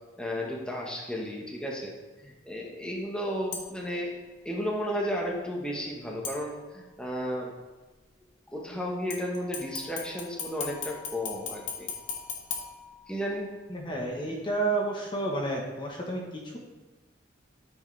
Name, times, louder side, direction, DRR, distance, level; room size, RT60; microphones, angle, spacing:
voice 1, 0.2-4.2 4.4-7.5 8.5-11.9 13.1-13.5, equal, 5° left, -2 dB, 1.2 m, -33 dB
sound 1, 3.5-4.0 6.2-7.0 9.1-13.5 13.9-14.0, left 6 dB, 75° left, 1.4 m, -39 dB
voice 2, 13.7-16.6, right 2 dB, 25° left, -1 dB, 1.1 m, -31 dB
12.5 x 6.4 x 3.3 m, 1.2 s
head